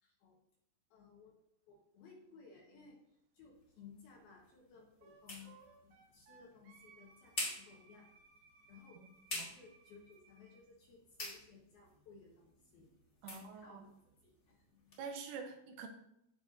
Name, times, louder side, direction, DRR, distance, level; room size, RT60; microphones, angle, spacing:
voice 1, 0.0-0.4 0.9-1.4 1.7-3.0 3.3-8.1 8.7-9.0 9.3-12.9 13.2-13.9 14.2-15.0, left 5 dB, 65° left, -2 dB, 2.5 m, -59 dB
sound 1, 3.5-15.0, left 2 dB, 50° left, 0.8 m, -49 dB
Wind instrument woodwind instrument, 5.0-10.6, right 5 dB, 65° right, 3.2 m, -64 dB
voice 2, 13.2-13.8 15.0-15.9, right 5 dB, 80° right, 5 dB, 3.4 m, -46 dB
16.0 x 5.9 x 2.6 m, 0.79 s
omnidirectional pair, 5.7 m